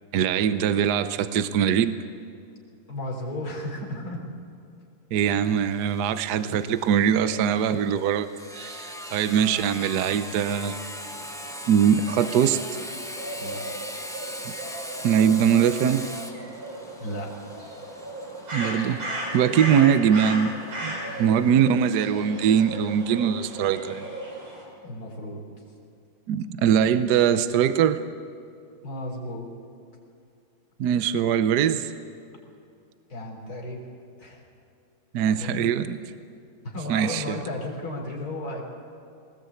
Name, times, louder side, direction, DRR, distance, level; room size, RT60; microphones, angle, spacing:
voice 1, 0.1-2.0 5.1-8.3 8.5-10.8 11.7-12.6 15.0-16.1 18.5-19.0 19.3-20.5 20.8-24.1 26.3-28.0 30.8-31.9 35.1-36.0 36.9-37.4, right 8 dB, 65° right, 11 dB, 1.2 m, -22 dB
voice 2, 2.9-4.2 13.4-13.7 17.0-17.3 21.0-21.7 22.7-22.9 24.8-25.4 28.8-29.5 33.1-33.8 34.2-34.4 35.2-35.7 36.6-38.6, left 1 dB, 50° left, -1 dB, 4.5 m, -34 dB
Sawing, 5.3-20.7, equal, 5° left, 0.8 m, -40 dB
sound 1, 11.0-24.6, right 1 dB, 85° right, 5.7 m, -36 dB
20.5 x 19.5 x 8.4 m, 2.5 s
omnidirectional pair, 2.2 m